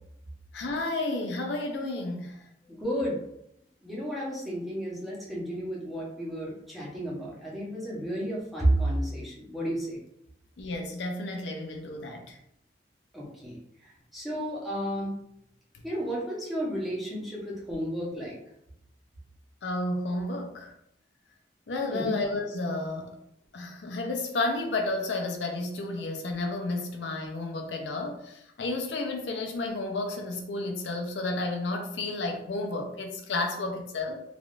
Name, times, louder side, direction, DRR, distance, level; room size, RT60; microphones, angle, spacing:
voice 1, 0.5-2.4 10.6-12.4 15.7-15.8 19.6-20.7 21.7-23.2 23.5-34.2, left 2 dB, 85° left, 3 dB, 0.5 m, -32 dB
voice 2, 2.7-3.2 3.8-10.0 13.1-13.5 14.1-15.1 15.8-18.4 21.9-22.2, right 1 dB, ahead, -6 dB, 0.8 m, -31 dB
3.3 x 2.4 x 2.4 m, 0.76 s
head